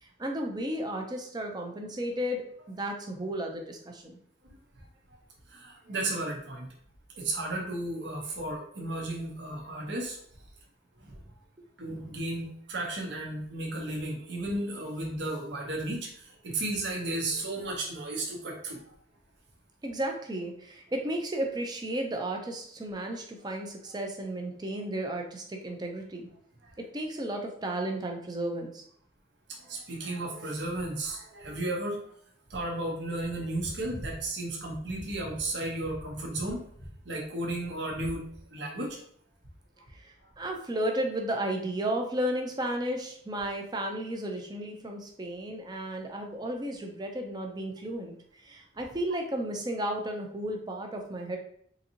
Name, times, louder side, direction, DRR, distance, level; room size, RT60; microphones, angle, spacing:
voice 1, 0.0-4.1 19.8-26.3 26.8-28.8 39.9-48.1 48.4-51.4, right 1 dB, 20° right, 2 dB, 0.5 m, -33 dB
voice 2, 5.5-6.7 7.1-10.2 11.0-11.2 11.8-18.9 26.6-26.7 29.5-32.0 32.5-36.6 37.0-38.2 38.5-39.0, right 2 dB, 60° right, -1 dB, 0.8 m, -34 dB
3.9 x 2.7 x 2.8 m, 0.64 s
head